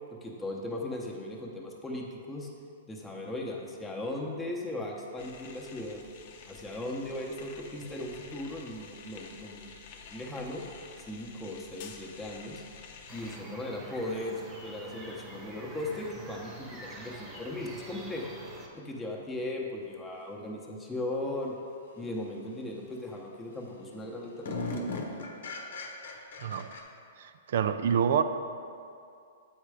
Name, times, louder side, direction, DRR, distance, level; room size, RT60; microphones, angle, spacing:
voice 1, 0.2-2.5 2.9-6.0 6.5-9.7 10.1-10.6 11.0-12.6 13.1-18.2 18.7-21.5 22.0-24.9, left 1 dB, 5° left, -3 dB, 0.9 m, -37 dB
sound 1, 5.2-13.4, left 5 dB, 50° left, 0.7 m, -50 dB
sound 2, 13.1-18.7, right 2 dB, 20° right, 1.1 m, -46 dB
sound 3, 19.2-19.3 22.0-22.2 22.6-23.1 23.5-23.6 23.9-26.8, left 2 dB, 80° left, 0.9 m, -38 dB
voice 2, 26.4-26.7 27.2-28.2, right 8 dB, 65° right, 10 dB, 0.4 m, -27 dB
8.0 x 4.4 x 4.9 m, 2.4 s
hypercardioid pair, 150°, 0 cm